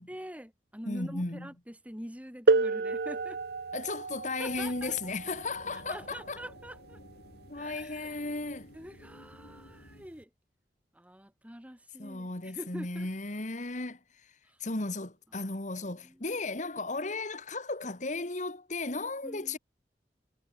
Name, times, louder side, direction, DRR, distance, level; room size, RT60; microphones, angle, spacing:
voice 1, 0.0-3.4 4.4-4.9 5.9-7.0 7.5-8.3 8.7-10.3 10.9-13.1 14.5-14.6 16.0-16.4 19.2-19.6, equal, 10° right, 6.0 m, -45 dB
voice 2, 0.9-1.5 3.7-6.4 7.5-8.7 12.0-19.6, left 3 dB, 45° left, 2.0 m, -35 dB
sound 1, 2.5-7.9 9.0-9.1 9.9-10.1, right 3 dB, 60° right, 0.6 m, -31 dB
sound 2, 4.5-10.1, left 1 dB, 90° left, 3.9 m, -54 dB
head